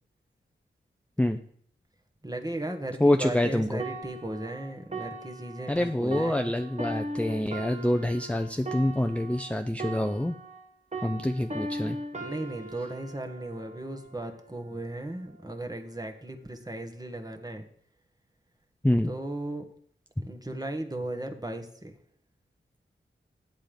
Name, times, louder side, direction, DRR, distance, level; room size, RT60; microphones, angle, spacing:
voice 1, 2.2-6.5 12.2-17.6 19.1-19.6 20.2-21.9, right 1 dB, 20° right, 4 dB, 1.4 m, -36 dB
voice 2, 3.0-3.8 5.7-10.4 11.0-12.0 18.8-19.1, left 1 dB, 5° left, 6 dB, 0.6 m, -26 dB
sound 1, 3.8-10.7 10.9-14.5 15.1-15.4, right 1 dB, 35° right, 1.4 m, -39 dB
8.1 x 7.6 x 5.2 m, 0.62 s
cardioid pair, 40°, 21 cm